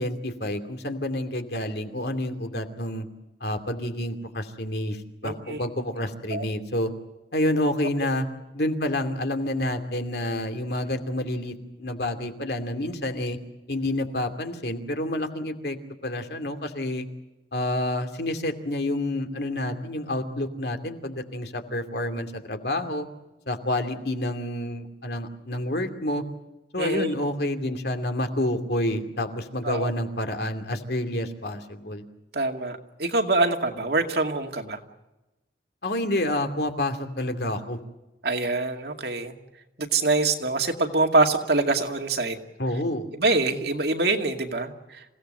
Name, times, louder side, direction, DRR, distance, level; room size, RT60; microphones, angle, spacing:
voice 1, 0.0-3.1 3.4-6.9 7.3-8.2 8.5-13.4 13.7-15.8 16.0-17.1 17.5-23.1 23.5-26.2 26.7-32.0 35.8-37.8 42.6-43.1, left 1 dB, 60° left, 6 dB, 2.5 m, -28 dB
voice 2, 5.2-5.6 6.3-6.5 26.8-27.1 29.6-29.9 32.3-34.8 38.2-39.4 39.8-42.4 43.2-45.0, right 3 dB, 60° right, 4 dB, 2.2 m, -25 dB
28.0 x 17.0 x 7.7 m, 1.0 s
head